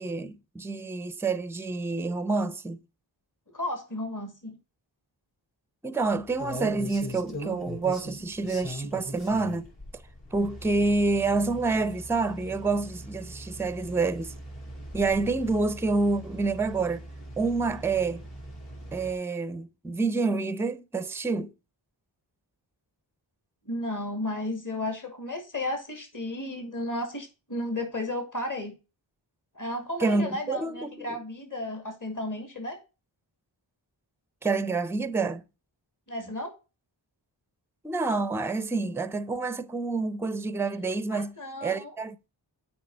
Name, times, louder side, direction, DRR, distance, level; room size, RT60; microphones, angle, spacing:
voice 1, 0.0-2.8 5.8-9.7 10.3-14.3 14.9-17.0 17.4-18.2 18.9-21.5 30.0-31.1 34.4-35.4 37.8-41.3 41.6-42.2, right 3 dB, 5° right, 0.5 m, -28 dB
voice 2, 3.5-4.6 23.7-28.8 29.5-32.8 36.1-36.5 41.1-41.9, left 1 dB, 40° left, 2.3 m, -33 dB
sound 1, 6.0-19.1, equal, 60° left, 3.5 m, -41 dB
8.5 x 4.7 x 4.0 m
cardioid pair, 55°, 47 cm